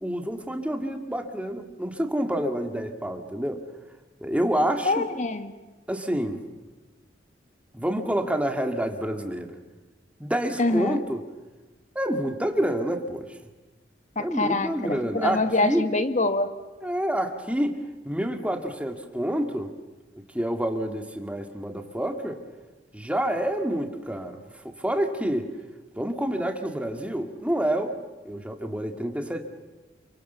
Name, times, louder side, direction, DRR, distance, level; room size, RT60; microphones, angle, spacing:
voice 1, 0.0-3.6 4.2-5.1 5.9-6.4 7.7-9.6 10.2-11.2 12.0-13.4 14.2-15.8 16.8-17.8 18.1-19.7 20.3-22.4 22.9-25.5 26.0-28.0 28.2-29.4, right 1 dB, 5° right, 5 dB, 2.1 m, -28 dB
voice 2, 4.8-5.5 10.6-11.0 14.2-16.5, left 2 dB, 40° left, 9 dB, 1.7 m, -25 dB
28.5 x 25.0 x 7.0 m, 1.2 s
head